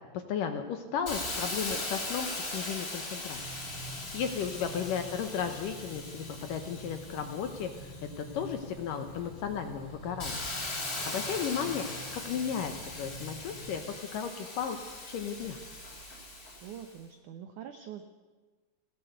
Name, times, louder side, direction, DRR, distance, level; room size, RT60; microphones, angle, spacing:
voice 1, 0.1-3.4 3.9-10.4 11.0-11.9 12.1-14.8 15.1-15.6, left 7 dB, 70° left, 7 dB, 2.2 m, -34 dB
Hiss, 1.1-8.6 9.1-16.9, left 2 dB, 20° left, 4.0 m, -40 dB
sound 1, 3.3-13.9, equal, 45° left, 5.2 m, -47 dB
voice 2, 16.6-18.0, right 9 dB, 80° right, 8 dB, 1.7 m, -45 dB
20.0 x 16.5 x 8.1 m, 1.3 s
omnidirectional pair, 4.9 m